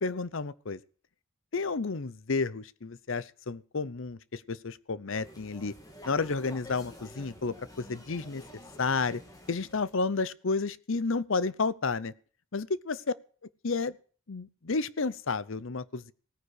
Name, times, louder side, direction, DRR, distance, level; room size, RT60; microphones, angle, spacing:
voice 1, 0.0-0.8 1.5-5.7 6.0-8.4 8.8-9.2 9.5-12.1 12.5-13.0 13.6-13.9 14.3-16.1, left 4 dB, 60° left, 18 dB, 0.7 m, -31 dB
sound 1, 5.1-10.1, left 1 dB, 15° left, 2.5 m, -50 dB
17.0 x 9.9 x 6.4 m, 0.43 s
head